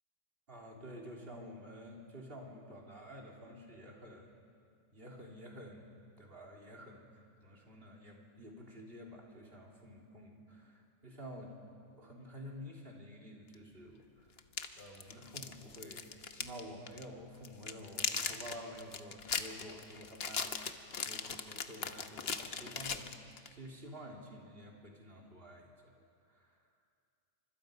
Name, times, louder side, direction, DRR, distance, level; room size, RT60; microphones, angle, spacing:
voice 1, 0.5-4.3 4.9-14.3 14.8-23.1 23.5-25.9 26.3-26.6, equal, 40° right, -2 dB, 3.7 m, -50 dB
sound 1, 13.5-13.6 14.4-16.6 16.9-17.0 17.4-23.5, left 5 dB, 50° left, 1.1 m, -39 dB
28.5 x 25.5 x 5.3 m, 2.2 s
omnidirectional pair, 1.5 m